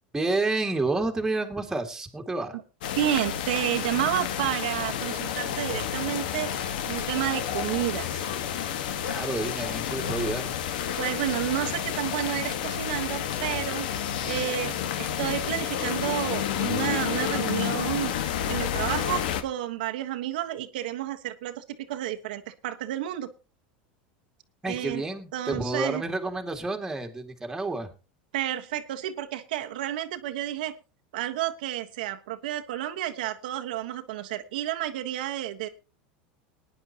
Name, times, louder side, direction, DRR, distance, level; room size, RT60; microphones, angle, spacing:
voice 1, 0.1-2.6 9.0-10.5 24.6-27.9, right 2 dB, 10° right, 3 dB, 2.2 m, -29 dB
sound 1, 2.8-19.4, left 9 dB, 80° left, 1.4 m, -30 dB
voice 2, 3.0-8.2 11.0-13.9 14.2-18.1 18.5-23.3 24.6-25.0 25.3-26.0 28.3-30.7 31.1-35.7, right 13 dB, 80° right, 6 dB, 1.2 m, -30 dB
20.5 x 10.0 x 2.9 m, 0.31 s
supercardioid pair, 130°, 5 cm